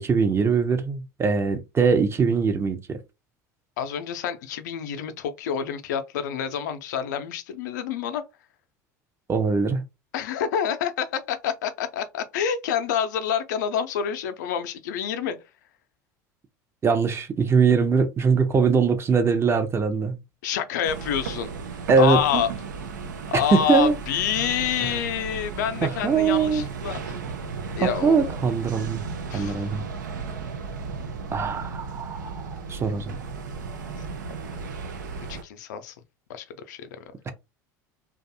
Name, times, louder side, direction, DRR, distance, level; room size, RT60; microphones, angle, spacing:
voice 1, 0.0-3.0 9.3-9.8 16.8-20.2 21.9-22.4 23.3-24.0 25.8-26.6 27.8-29.0 29.3-29.8 31.3-33.2, right 5 dB, 25° right, 0.6 m, -22 dB
voice 2, 3.8-8.2 10.1-15.4 20.4-21.5 22.0-22.5 23.3-27.2 27.8-28.3 29.3-29.7 35.3-35.9 36.3-37.3, left 9 dB, 75° left, 0.5 m, -28 dB
sound 1, 20.8-35.4, right 4 dB, 85° right, 0.5 m, -35 dB
2.5 x 2.3 x 2.6 m
hypercardioid pair, 75°, 10 cm